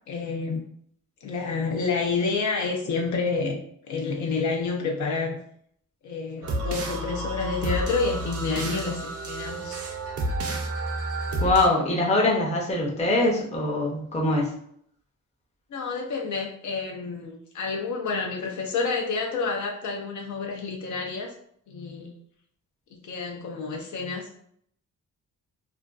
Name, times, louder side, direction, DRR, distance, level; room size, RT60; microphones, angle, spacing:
voice 1, 0.1-0.6 1.2-3.6 3.8-5.4 6.0-9.8 15.7-21.3 21.7-22.1 22.9-24.3, left 4 dB, 65° left, 1 dB, 0.5 m, -29 dB
sound 1, 6.4-11.7, right 1 dB, 50° right, 0.5 m, -30 dB
voice 2, 11.4-14.5, left 2 dB, 20° left, -2 dB, 0.6 m, -23 dB
2.4 x 2.2 x 2.3 m, 0.66 s
wide cardioid pair, 140°, 32 cm